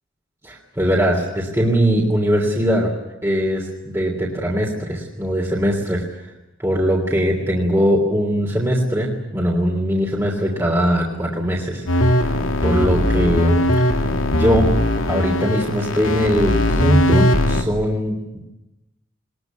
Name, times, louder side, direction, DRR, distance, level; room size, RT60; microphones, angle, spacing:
voice 1, 0.4-2.9 3.2-6.3 6.6-12.2 12.6-14.0 14.3-14.7 15.1-18.4, equal, 15° right, -2 dB, 3.2 m, -21 dB
sound 1, 11.9-17.6, left 1 dB, 90° left, 2.4 m, -19 dB
22.0 x 20.5 x 9.4 m, 0.95 s
head